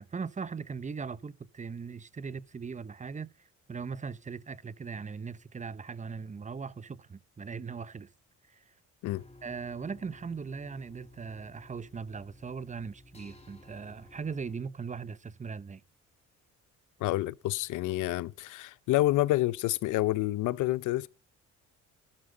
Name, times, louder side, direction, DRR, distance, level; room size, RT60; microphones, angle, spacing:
voice 1, 0.0-8.1 8.5-8.7 9.4-15.8, right 5 dB, 25° right, 0.7 m, -39 dB
sound 1, 9.0-14.6, left 1 dB, 20° left, 3.0 m, -55 dB
voice 2, 17.0-21.1, left 16 dB, 85° left, 0.7 m, -28 dB
14.0 x 12.0 x 5.1 m
cardioid pair, 90°, 30 cm